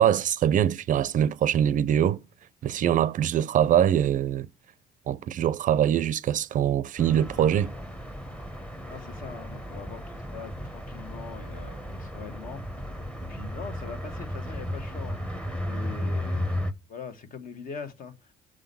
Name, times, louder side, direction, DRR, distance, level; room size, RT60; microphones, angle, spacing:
voice 1, 0.0-2.2 2.6-4.5 5.1-7.7, right 10 dB, 50° right, 0.5 m, -23 dB
sound 1, 7.0-16.7, left 1 dB, 5° left, 0.9 m, -34 dB
voice 2, 8.9-12.8 13.3-15.2 15.7-16.6 16.9-18.5, left 5 dB, 55° left, 1.4 m, -42 dB
6.4 x 3.8 x 5.3 m
cardioid pair, 110°, 17 cm